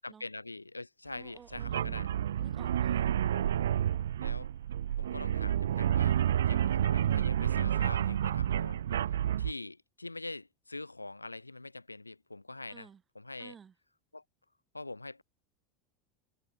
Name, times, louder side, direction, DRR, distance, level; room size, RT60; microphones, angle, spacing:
voice 1, 0.0-2.1 4.2-4.5 5.0-8.8 9.4-12.9 13.2-13.5 14.1-14.2 14.7-15.2, left 2 dB, 85° left, 1.9 m, -44 dB
voice 2, 1.1-3.1 12.7-13.0 13.4-13.7, right 7 dB, 25° right, 6.8 m, -54 dB
sound 1, 1.5-9.5, right 10 dB, 65° right, 0.4 m, -29 dB
figure-of-eight pair, 80°, 0 cm